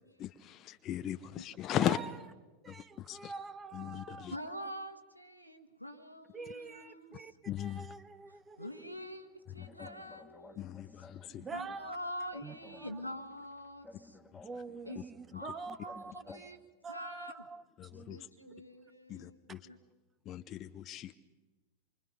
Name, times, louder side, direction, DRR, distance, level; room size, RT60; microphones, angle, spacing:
voice 1, 0.2-2.0 2.7-2.8 3.1-3.3 3.7-4.3 7.5-7.8 9.6-9.7 10.6-11.4 17.8-18.2 19.1-19.6 20.3-21.2, left 12 dB, 35° left, 11 dB, 0.7 m, -37 dB
voice 2, 1.8-2.3 2.6-4.4 6.3-8.9 11.4-12.0 12.4-13.0 14.4-16.6 16.8-17.6 17.9-18.8 19.5-19.6, right 4 dB, 20° right, 16 dB, 1.1 m, -46 dB
voice 3, 4.3-7.3 8.6-10.7 11.4-14.2 14.9-15.0 15.3-16.6 16.9-17.5 18.1-19.8, equal, 90° left, 5 dB, 1.6 m, -45 dB
sound 1, 8.9-16.6, left 2 dB, 10° left, 2.0 m, -56 dB
27.0 x 24.5 x 5.4 m, 1.2 s
figure-of-eight pair, 90°, 0 cm